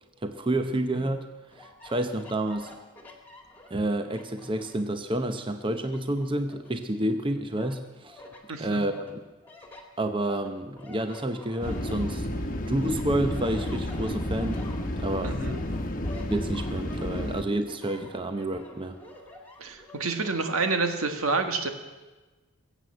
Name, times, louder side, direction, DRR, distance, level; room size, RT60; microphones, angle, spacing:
voice 1, 0.2-1.3 1.6-2.7 3.7-8.2 8.6-9.2 10.0-12.3 12.7-14.6 15.0-15.4 16.3-19.0, right 1 dB, 25° right, 7 dB, 0.8 m, -29 dB
sound 1, 1.5-5.0 5.4-7.2 7.6-8.4 8.9-12.5 12.8-20.4, left 2 dB, 10° left, 2.1 m, -48 dB
voice 2, 8.5-8.8 15.2-15.6 19.6-21.7, right 3 dB, 85° right, 6 dB, 1.7 m, -28 dB
sound 2, 11.6-17.4, left 1 dB, 40° left, 1.1 m, -31 dB
21.5 x 8.1 x 7.8 m, 1.2 s
head